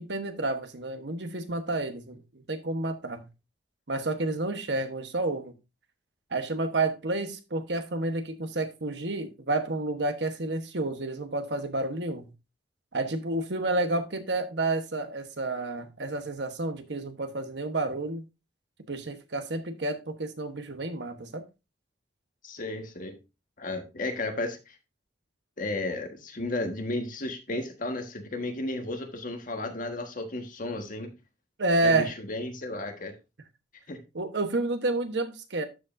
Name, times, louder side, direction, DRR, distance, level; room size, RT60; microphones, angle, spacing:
voice 1, 0.0-3.3 3.9-5.5 6.3-12.3 12.9-18.2 18.9-21.4 31.6-32.1 34.1-35.7, right 2 dB, 65° right, 1.1 m, -30 dB
voice 2, 22.4-23.2 23.6-24.8 25.6-31.1 31.8-33.1 33.9-34.0, left 2 dB, 50° left, 1.5 m, -33 dB
12.5 x 5.2 x 2.6 m
head